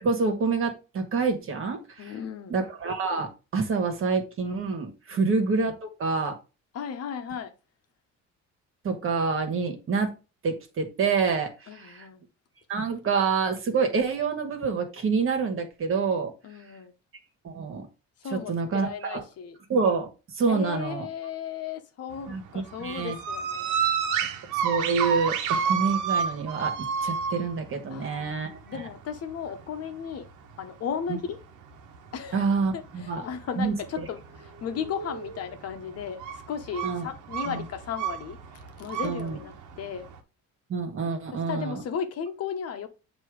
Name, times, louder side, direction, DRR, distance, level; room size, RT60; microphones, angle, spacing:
voice 1, 0.0-2.1 2.5-6.3 8.8-10.1 10.4-12.1 12.7-16.3 17.4-17.9 18.3-19.2 19.7-20.1 20.4-21.1 22.3-23.1 24.6-28.8 31.1-31.2 32.3-33.2 33.6-34.1 36.8-37.1 37.4-37.6 39.0-39.4 40.7-41.8, right 4 dB, 45° right, 1.7 m, -27 dB
voice 2, 2.0-2.5 5.1-5.2 6.7-7.5 11.7-12.2 16.4-16.9 18.2-19.6 20.5-23.9 27.9-30.3 30.6-31.4 32.1-32.4 32.7-36.2 36.5-40.1 41.3-42.9, left 7 dB, 55° left, 1.0 m, -35 dB
sound 1, 22.1-40.2, right 7 dB, 90° right, 1.2 m, -31 dB
7.5 x 3.0 x 4.9 m
cardioid pair, 130°, 29 cm